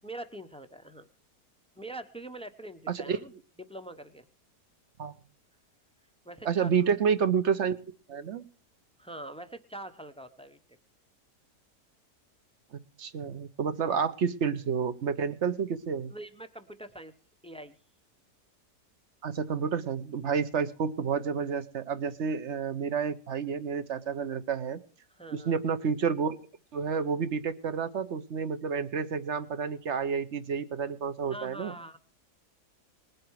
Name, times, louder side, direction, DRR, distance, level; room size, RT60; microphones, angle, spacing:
voice 1, 0.0-1.1 1.8-3.3 3.6-4.3 6.2-6.9 9.0-10.6 16.1-17.1 17.4-17.8 25.1-25.6 31.3-32.0, right 1 dB, 5° left, 10 dB, 0.6 m, -43 dB
voice 2, 2.9-3.2 5.0-5.1 6.4-7.8 8.1-8.4 12.7-16.1 19.2-24.8 25.5-26.4 26.7-31.7, right 6 dB, 50° right, 13 dB, 1.1 m, -30 dB
20.5 x 7.8 x 4.7 m, 0.41 s
omnidirectional pair, 1.8 m